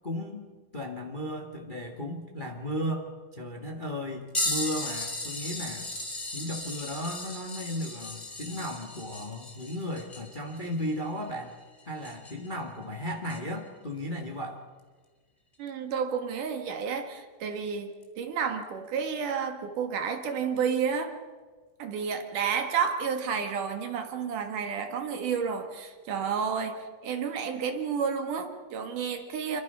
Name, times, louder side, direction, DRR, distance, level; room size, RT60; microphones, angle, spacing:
voice 1, 0.0-5.9 6.3-11.5 11.8-14.6, equal, 50° left, 2 dB, 0.5 m, -35 dB
sound 1, 4.3-12.5 13.3-13.4 15.7-15.8 16.8-17.0 18.0-18.1, left 1 dB, 15° left, 2.7 m, -36 dB
voice 2, 15.6-21.1 21.8-29.6, right 6 dB, 60° right, 6 dB, 3.0 m, -31 dB
27.0 x 24.5 x 5.7 m, 1.4 s
omnidirectional pair, 4.4 m